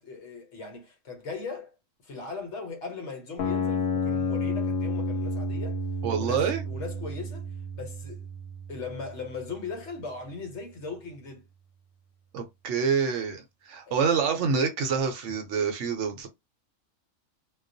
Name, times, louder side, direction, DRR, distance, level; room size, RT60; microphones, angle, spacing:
voice 1, 0.0-1.7 2.0-5.8 6.1-7.5 7.7-8.2 8.7-11.5, left 4 dB, 65° left, 1.0 m, -39 dB
sound 1, 3.4-9.4, left 2 dB, 85° left, 1.0 m, -31 dB
voice 2, 6.0-6.6 12.3-16.3, right 6 dB, 70° right, 0.9 m, -27 dB
2.3 x 2.2 x 2.5 m
omnidirectional pair, 1.4 m